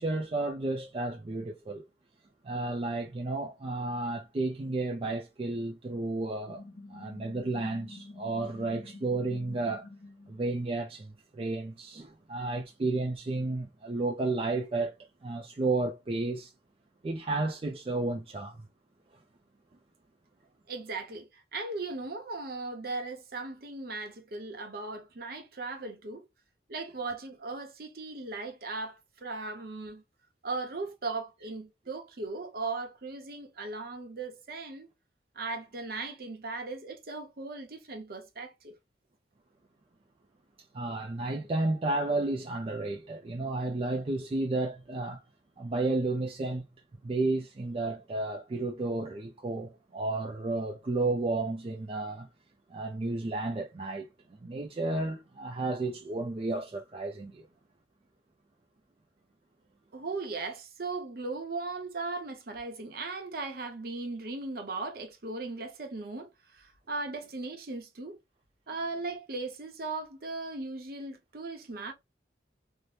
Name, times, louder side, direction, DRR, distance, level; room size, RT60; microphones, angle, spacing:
voice 1, 0.0-1.8 2.4-6.6 6.9-9.9 10.3-16.5 17.0-18.6 40.7-45.2 45.6-46.6 47.0-52.3 52.7-54.1 54.4-57.5, right 2 dB, 30° right, 0.3 m, -32 dB
sound 1, 6.5-10.4, left 2 dB, 40° left, 0.5 m, -48 dB
voice 2, 20.7-26.2 26.7-30.0 30.4-34.9 35.4-38.7 59.9-68.2 68.7-71.9, right 3 dB, 55° right, 0.7 m, -38 dB
2.6 x 2.1 x 3.2 m
head